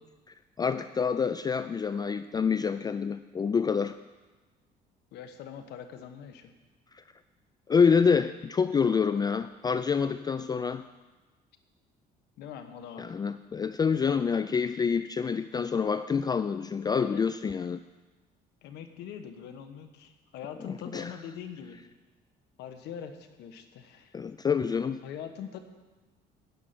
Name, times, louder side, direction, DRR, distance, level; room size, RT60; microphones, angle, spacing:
voice 1, 0.6-4.0 7.7-10.8 13.0-17.8 20.7-21.1 24.1-25.0, left 6 dB, 25° left, 12 dB, 0.3 m, -27 dB
voice 2, 5.1-6.5 12.4-13.2 17.0-17.2 18.6-21.8 22.6-24.2 25.0-25.6, left 8 dB, 80° left, 8 dB, 1.3 m, -42 dB
13.0 x 5.6 x 9.5 m, 1.2 s
cardioid pair, 110°, 17 cm